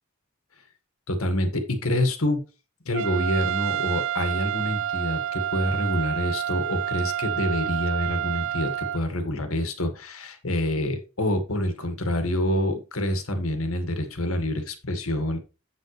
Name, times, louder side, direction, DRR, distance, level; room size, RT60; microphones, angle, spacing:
voice 1, 1.1-2.4 2.9-15.4, left 1 dB, 80° left, 7 dB, 1.9 m, -27 dB
Trumpet, 2.9-9.0, right 10 dB, 65° right, 0.4 m, -29 dB
7.8 x 7.7 x 3.3 m, 0.31 s
head